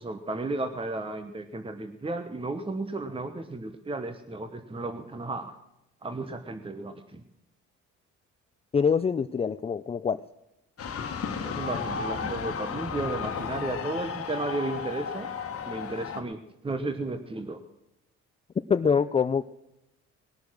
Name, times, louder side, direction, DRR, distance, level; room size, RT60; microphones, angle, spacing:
voice 1, 0.0-5.5 6.0-7.2 11.4-15.3 15.6-17.6, right 2 dB, 20° right, 8 dB, 1.0 m, -34 dB
voice 2, 8.7-10.2 18.7-19.4, left 6 dB, 20° left, 13 dB, 0.4 m, -24 dB
sound 1, 10.8-16.2, left 6 dB, 50° left, 1.5 m, -33 dB
20.0 x 7.0 x 6.2 m, 0.89 s
cardioid pair, 90°, 30 cm